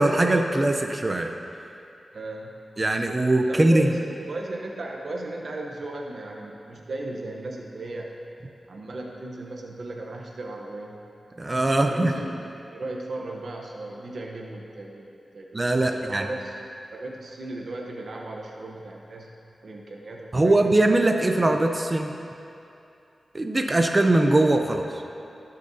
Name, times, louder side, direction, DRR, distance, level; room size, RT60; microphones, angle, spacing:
voice 1, 0.0-1.3 2.8-3.9 11.4-12.1 15.5-16.3 20.3-22.1 23.3-25.0, right 2 dB, 30° right, 4 dB, 0.5 m, -21 dB
voice 2, 2.1-2.6 3.5-8.2 8.7-11.0 11.8-16.6 16.9-19.3 19.6-20.7, right 2 dB, 70° right, 0 dB, 0.8 m, -36 dB
17.0 x 6.5 x 2.7 m, 2.7 s
wide cardioid pair, 90°, 0 cm